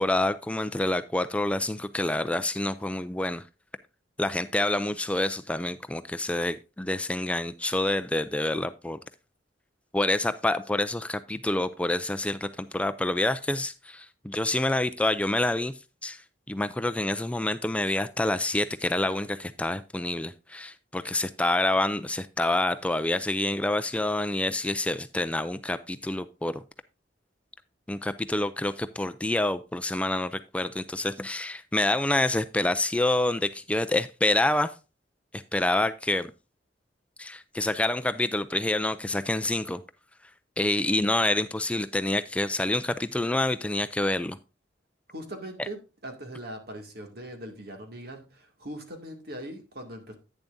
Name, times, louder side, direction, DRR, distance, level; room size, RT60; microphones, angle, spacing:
voice 1, 0.0-3.4 4.2-9.0 9.9-15.7 16.0-16.2 16.5-26.6 27.9-34.7 35.3-36.3 37.2-39.8 40.6-44.4 45.6-45.7, left 2 dB, 5° left, 11 dB, 0.3 m, -27 dB
voice 2, 45.1-50.1, right 1 dB, 60° right, 4 dB, 2.2 m, -40 dB
10.5 x 9.2 x 2.6 m, 0.30 s
head